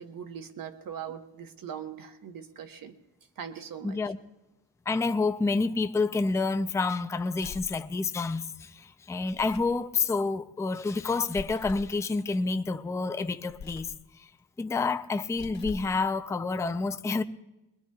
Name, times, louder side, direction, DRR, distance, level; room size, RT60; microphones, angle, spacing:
voice 1, 0.0-2.9 3.4-4.0, right 8 dB, 50° right, 1.2 m, -41 dB
voice 2, 3.8-4.2 4.9-14.3 14.6-17.2, left 3 dB, 5° left, 0.4 m, -29 dB
sound 1, 7.4-7.8 9.2-9.8 11.3-12.0 13.5-14.0 15.2-16.0, left 6 dB, 70° left, 1.7 m, -43 dB
21.0 x 21.0 x 2.3 m
cardioid pair, 95°, 42 cm